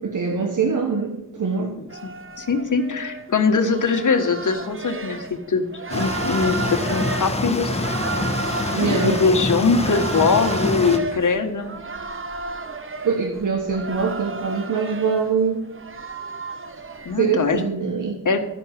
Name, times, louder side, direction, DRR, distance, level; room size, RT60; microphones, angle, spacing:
voice 1, 0.0-1.8 8.7-9.2 13.0-15.7 17.2-18.2, right 5 dB, 65° right, 3 dB, 1.2 m, -23 dB
sound 1, 1.9-17.7, right 3 dB, 40° right, 0.9 m, -33 dB
voice 2, 2.4-7.7 8.8-11.8 17.0-17.6 18.2-18.4, left 4 dB, 65° left, 6 dB, 1.4 m, -21 dB
sound 2, 5.9-11.0, left 2 dB, 20° left, 1.5 m, -26 dB
13.0 x 6.0 x 7.4 m, 0.90 s
cardioid pair, 55°, 33 cm